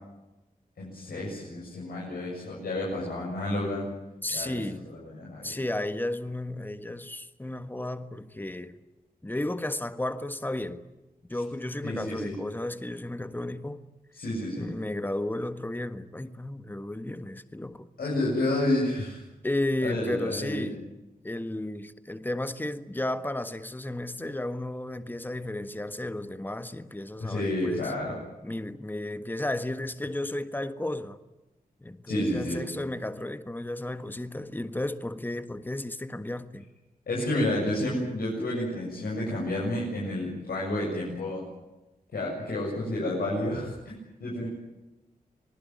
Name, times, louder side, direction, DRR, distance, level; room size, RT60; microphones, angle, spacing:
voice 1, 0.8-3.9 4.3-4.6 4.8-5.5 11.3-11.4 11.8-12.3 14.1-14.6 18.0-19.2 19.8-20.7 27.2-28.2 32.1-32.6 37.1-41.5 42.1-44.5, left 1 dB, 85° left, 7.8 m, -30 dB
voice 2, 4.2-4.9 5.4-8.8 9.2-10.8 11.3-13.8 14.6-17.9 19.4-20.8 21.2-27.9 28.4-31.2 31.8-36.7, left 1 dB, 10° left, 1.5 m, -33 dB
26.5 x 19.5 x 9.4 m
cardioid pair, 65°, 15 cm